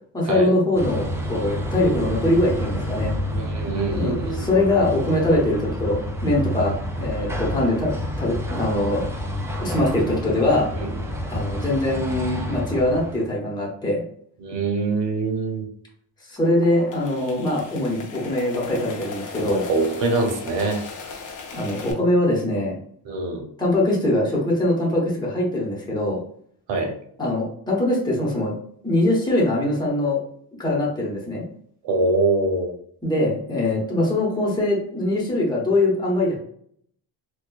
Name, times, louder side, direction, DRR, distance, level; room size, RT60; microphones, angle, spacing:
voice 1, 0.1-3.1 3.9-9.0 9.6-10.7 11.3-14.0 16.3-19.6 21.5-22.7 23.6-26.2 27.2-28.5 28.8-30.2 30.6-31.4 33.0-36.4, left 1 dB, 10° left, -4 dB, 1.0 m, -22 dB
sound 1, 0.7-13.3, equal, 5° right, 0.3 m, -29 dB
voice 2, 3.3-4.4 10.8-10.9 14.4-15.6 19.3-20.8 23.0-23.4 26.7-26.9 31.8-32.7, right 3 dB, 85° right, 3 dB, 0.9 m, -24 dB
sound 2, 16.3-21.9, left 5 dB, 45° left, 0.7 m, -38 dB
4.3 x 2.4 x 2.3 m, 0.62 s
cardioid pair, 140°, 43 cm